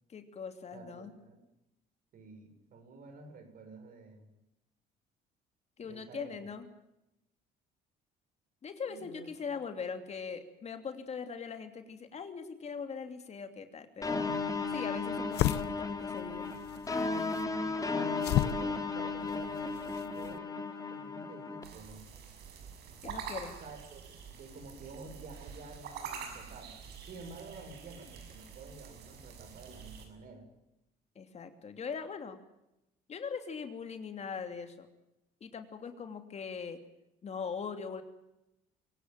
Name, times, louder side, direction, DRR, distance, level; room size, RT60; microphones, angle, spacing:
voice 1, 0.1-1.1 5.8-6.7 8.6-14.2 14.7-16.5 23.0-23.6 31.1-32.4 33.1-34.9 35.4-36.8 37.2-38.0, left 6 dB, 40° left, 7 dB, 2.9 m, -41 dB
voice 2, 0.7-1.4 2.1-4.3 5.8-6.5 8.9-9.3 17.6-22.1 23.6-30.5, right 3 dB, 60° right, 6 dB, 6.8 m, -50 dB
sound 1, 14.0-20.4, left 13 dB, 75° left, 0.9 m, -36 dB
sound 2, 14.0-21.6, left 4 dB, 20° left, 3.1 m, -35 dB
sound 3, 21.6-30.1, right 7 dB, 75° right, 6.7 m, -46 dB
24.5 x 17.0 x 9.1 m, 0.89 s
cardioid pair, 110°, 17 cm